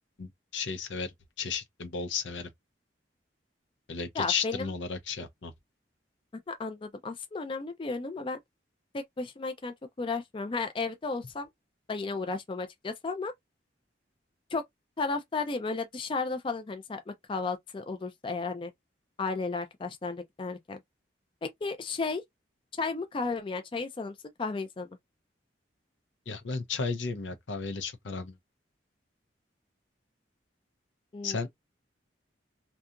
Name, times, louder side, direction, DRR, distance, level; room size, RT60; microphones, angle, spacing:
voice 1, 0.2-2.5 3.9-5.5 26.3-28.3 31.2-31.5, left 5 dB, 85° left, 0.6 m, -34 dB
voice 2, 4.2-4.7 6.5-8.4 8.9-11.5 11.9-13.3 14.5-14.6 15.0-18.7 19.2-20.8 21.4-22.2 22.8-24.9 31.1-31.5, left 4 dB, 30° left, 0.4 m, -34 dB
2.7 x 2.3 x 2.4 m
head